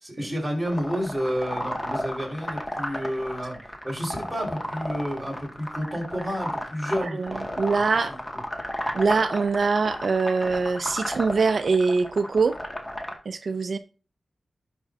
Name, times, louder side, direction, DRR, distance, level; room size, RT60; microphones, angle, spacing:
voice 1, 0.0-7.5, equal, 10° right, 4.5 m, -30 dB
sound 1, 0.7-13.2, left 1 dB, 25° left, 1.9 m, -33 dB
voice 2, 7.0-8.1 8.9-12.5 13.3-13.8, right 4 dB, 70° right, 0.5 m, -23 dB
11.5 x 5.9 x 2.7 m
cardioid pair, 55°, 0 cm